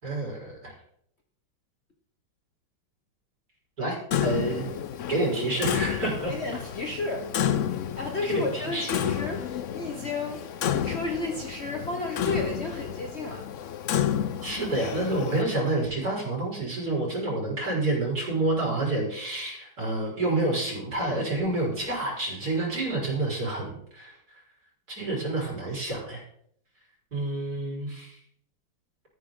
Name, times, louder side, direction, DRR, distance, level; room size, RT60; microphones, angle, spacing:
voice 1, 0.0-0.7 3.8-4.7 5.1-6.3 8.3-8.9 14.4-24.4 24.9-26.2 27.1-28.2, right 2 dB, 50° right, -4 dB, 5.6 m, -28 dB
Clock, 4.1-15.4, left 9 dB, 70° left, 0.7 m, -31 dB
voice 2, 6.3-7.3 8.0-13.5, left 2 dB, 40° left, 2 dB, 1.4 m, -32 dB
13.5 x 10.5 x 3.9 m, 0.69 s
omnidirectional pair, 2.1 m